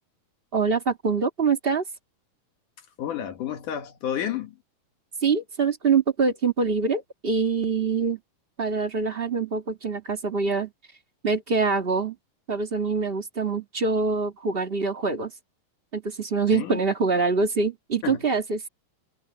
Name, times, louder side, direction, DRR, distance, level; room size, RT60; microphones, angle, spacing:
voice 1, 0.5-1.8 5.2-8.2 8.6-10.7 11.2-12.1 12.5-15.3 15.9-18.7, right 4 dB, 85° right, 0.5 m, -24 dB
voice 2, 3.0-4.6 16.5-16.8 18.0-18.2, left 10 dB, 65° left, 3.0 m, -30 dB
omnidirectional pair, 4.1 m